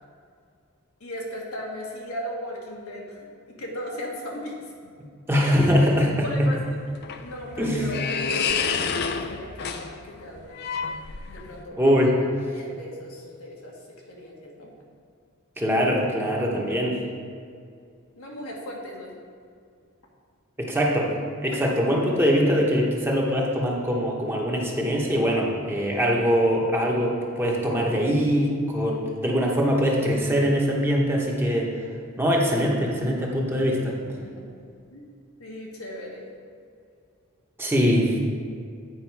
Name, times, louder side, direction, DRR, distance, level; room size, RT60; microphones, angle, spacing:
voice 1, 1.0-4.6 6.2-10.5 11.3-12.2 12.5-13.7 14.1-14.7 18.2-19.1 21.5-21.6 33.8-33.9 34.2-34.5 34.9-35.1 35.4-36.3, left 1 dB, 85° left, -2 dB, 1.5 m, -37 dB
voice 2, 5.3-6.2 7.6-7.8 11.7-12.1 15.6-17.0 20.6-21.1 21.4-31.7 32.2-33.9 37.6-38.2, equal, 10° right, -2 dB, 1.0 m, -22 dB
sound 1, 6.7-11.6, left 5 dB, 50° left, 0.4 m, -29 dB
8.9 x 5.1 x 4.7 m, 2.3 s
head